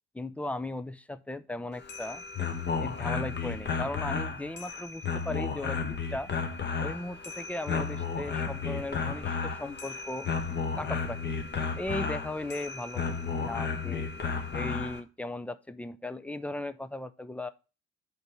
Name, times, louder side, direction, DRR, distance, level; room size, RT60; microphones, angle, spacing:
voice 1, 0.1-2.2 2.8-5.8 6.1-6.3 6.8-10.3 10.8-11.3 11.8-14.1 14.5-17.5, left 2 dB, 5° left, 12 dB, 0.5 m, -37 dB
sound 1, 1.7-15.0, left 5 dB, 30° left, 1.3 m, -33 dB
5.3 x 5.2 x 5.7 m, 0.32 s
figure-of-eight pair, 50°, 36 cm